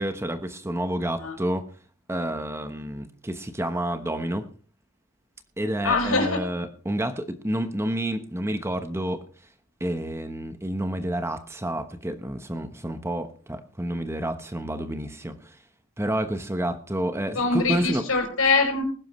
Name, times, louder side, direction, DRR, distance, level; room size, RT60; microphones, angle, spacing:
voice 1, 0.0-1.7 2.1-4.5 5.6-9.3 9.8-15.6 16.0-18.0, right 1 dB, 10° right, 8 dB, 1.0 m, -29 dB
voice 2, 5.8-6.4 17.3-18.8, left 3 dB, 80° left, 3 dB, 5.1 m, -23 dB
20.0 x 11.0 x 3.2 m, 0.40 s
head